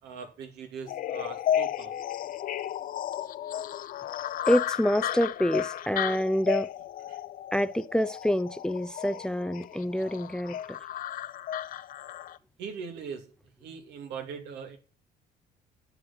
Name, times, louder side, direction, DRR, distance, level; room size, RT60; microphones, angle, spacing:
voice 1, 0.0-2.0 7.1-7.2 12.6-14.8, right 6 dB, 80° right, 2.4 m, -41 dB
sound 1, 0.9-12.4, left 11 dB, 55° left, 0.6 m, -34 dB
voice 2, 4.5-6.7 7.5-10.8, equal, 5° left, 0.5 m, -27 dB
10.5 x 6.6 x 5.7 m
cardioid pair, 110°, 17 cm